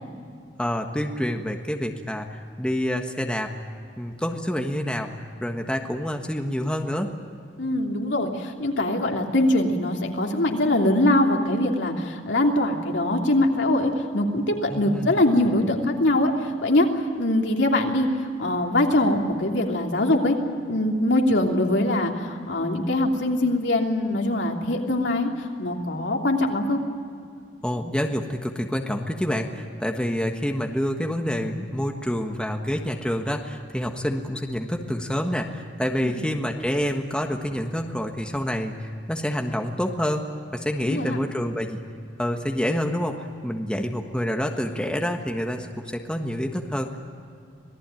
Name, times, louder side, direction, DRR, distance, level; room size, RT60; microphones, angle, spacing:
voice 1, 0.6-3.5 4.0-5.1 5.4-7.1 14.7-15.2 27.6-40.3 40.5-41.8 42.2-47.0, equal, 5° left, 3 dB, 1.5 m, -27 dB
voice 2, 7.6-20.4 20.7-26.8 36.0-36.2 40.8-41.2, left 1 dB, 75° left, 1 dB, 3.1 m, -23 dB
26.5 x 18.5 x 9.1 m, 2.4 s
head